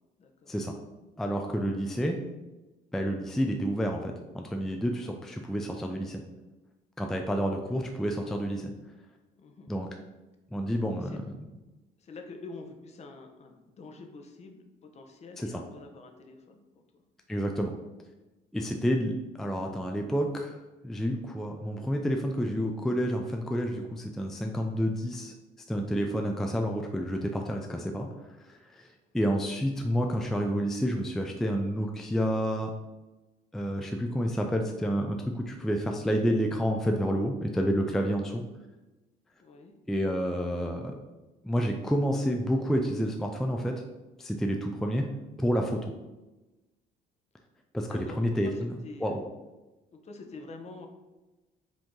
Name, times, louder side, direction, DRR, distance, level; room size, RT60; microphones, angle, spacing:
voice 1, 0.2-0.5 9.4-9.7 10.9-11.2 12.0-17.0 39.4-39.7 47.9-49.2 49.9-50.9, left 3 dB, 40° left, 3 dB, 0.8 m, -47 dB
voice 2, 1.2-2.2 2.9-6.2 7.0-8.7 9.7-9.9 10.5-11.5 15.4-15.5 17.3-17.7 18.5-20.6 20.8-25.3 25.7-28.1 28.4-28.9 29.1-32.7 33.5-38.4 39.9-41.0 41.4-43.7 44.2-45.1 45.4-45.9 47.7-49.1, equal, ahead, 2 dB, 0.3 m, -29 dB
5.1 x 2.8 x 3.6 m, 1.1 s
cardioid pair, 110°, 17 cm